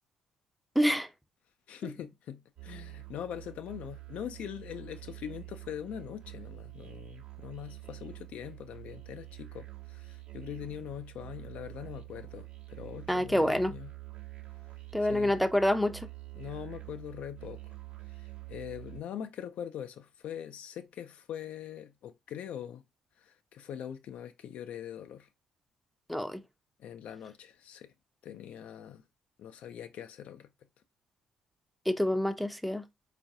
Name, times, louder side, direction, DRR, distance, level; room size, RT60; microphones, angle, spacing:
voice 1, 0.8-1.1 13.1-13.7 14.9-16.1 26.1-26.4 31.9-32.8, left 1 dB, ahead, 0.5 m, -27 dB
voice 2, 1.7-13.9 15.1-15.3 16.4-17.7 18.2-22.8 23.2-25.3 26.8-27.9 28.2-29.0 29.4-30.5, left 9 dB, 60° left, 0.4 m, -42 dB
Musical instrument, 2.6-19.0, right 20 dB, 65° right, 0.9 m, -47 dB
4.4 x 2.5 x 2.6 m
hypercardioid pair, 50°, 3 cm